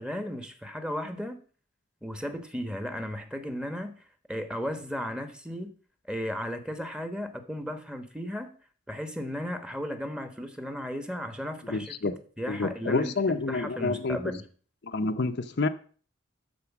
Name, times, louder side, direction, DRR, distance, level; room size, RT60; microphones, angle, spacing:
voice 1, 0.0-1.4 2.0-3.9 4.3-5.7 6.1-8.5 8.9-14.4, equal, 5° right, 1.1 m, -35 dB
voice 2, 11.7-12.1 12.5-14.2 14.9-15.7, left 3 dB, 60° left, 0.7 m, -28 dB
13.0 x 4.4 x 7.1 m
head